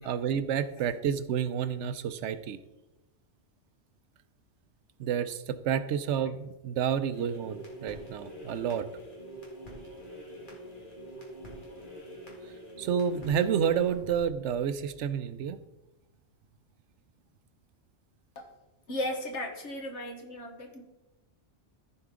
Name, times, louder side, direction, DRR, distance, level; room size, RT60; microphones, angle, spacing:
voice 1, 0.0-2.6 5.0-8.9 12.8-15.6, right 8 dB, 90° right, 12 dB, 0.9 m, -30 dB
sound 1, 7.1-15.1, right 1 dB, 45° left, 2.1 m, -45 dB
voice 2, 18.9-20.8, left 1 dB, 80° left, 3 dB, 1.6 m, -36 dB
14.0 x 4.8 x 3.7 m, 0.99 s
omnidirectional pair, 1.2 m